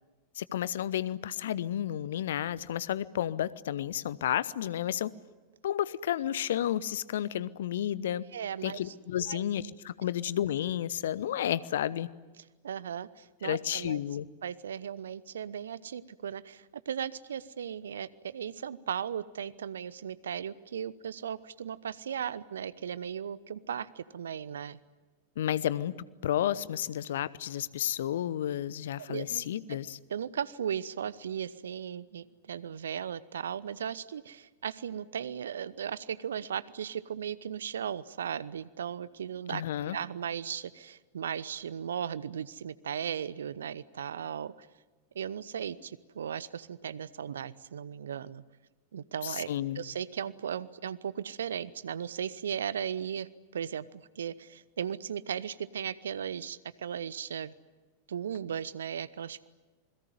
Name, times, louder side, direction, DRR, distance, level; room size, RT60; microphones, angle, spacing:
voice 1, 0.4-5.1 5.6-8.2 8.6-12.1 13.4-14.3 25.4-25.9 26.2-30.0 39.5-40.0 49.2-49.8, left 11 dB, 60° left, 19 dB, 0.9 m, -31 dB
voice 2, 8.3-9.4 12.6-14.0 14.4-24.8 29.1-29.4 30.1-44.7 45.1-48.4 48.9-49.5 49.7-57.5 58.1-59.5, right 8 dB, 65° right, 19 dB, 1.0 m, -37 dB
28.0 x 21.5 x 9.4 m, 1.2 s
figure-of-eight pair, 90°, 0 cm